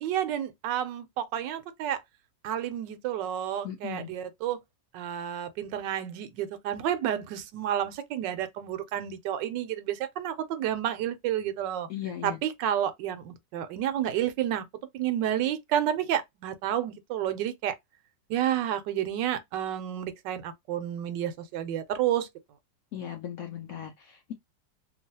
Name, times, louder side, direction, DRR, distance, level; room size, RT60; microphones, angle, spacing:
voice 1, 0.0-2.0 2.4-4.6 4.9-11.9 12.2-14.7 14.9-17.7 18.3-22.3, right 10 dB, 80° right, 1.2 m, -30 dB
voice 2, 3.6-4.1 11.9-12.4 22.9-24.3, left 10 dB, 70° left, 0.8 m, -37 dB
3.0 x 2.3 x 2.7 m
omnidirectional pair, 1.9 m